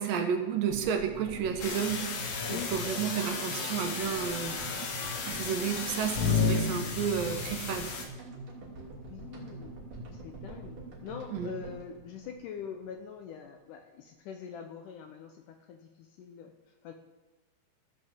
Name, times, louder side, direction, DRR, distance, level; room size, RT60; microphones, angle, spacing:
voice 1, 0.0-2.1 2.5-4.6 5.2-8.0 11.3-11.5, right 7 dB, 70° right, 5 dB, 2.6 m, -31 dB
sound 1, 0.7-12.9 13.2-13.3 13.4-13.5, right 2 dB, 35° right, 3.3 m, -44 dB
sound 2, 1.6-8.0, left 5 dB, 60° left, 2.4 m, -33 dB
voice 2, 8.9-9.8 10.1-10.8 11.0-16.9, left 7 dB, 75° left, 5 dB, 2.0 m, -44 dB
14.5 x 6.5 x 7.4 m, 1.1 s
omnidirectional pair, 4.4 m